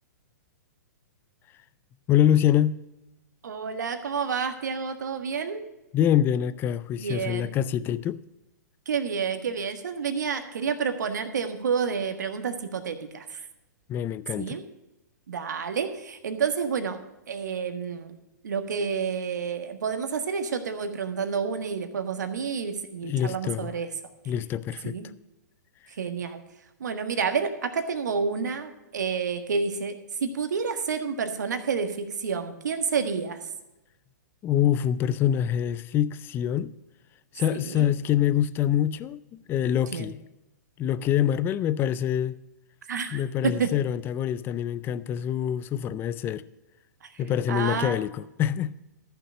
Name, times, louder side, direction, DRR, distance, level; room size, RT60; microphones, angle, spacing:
voice 1, 2.1-2.8 5.9-8.2 13.9-14.6 23.0-23.7 24.3-25.0 34.4-36.7 37.3-40.2 40.8-42.4 43.1-46.4 47.2-48.8, left 10 dB, 20° left, 0.4 m, -25 dB
voice 2, 3.4-5.6 7.0-7.5 8.8-13.5 14.3-14.6 15.3-17.0 17.3-18.2 18.4-23.9 24.8-25.1 26.0-26.4 26.8-33.4 37.5-37.9 39.9-40.1 42.9-43.7 47.0-47.1 47.5-48.0, right 6 dB, 70° right, 1.5 m, -29 dB
13.5 x 5.9 x 6.5 m
hypercardioid pair, 120°, 10 cm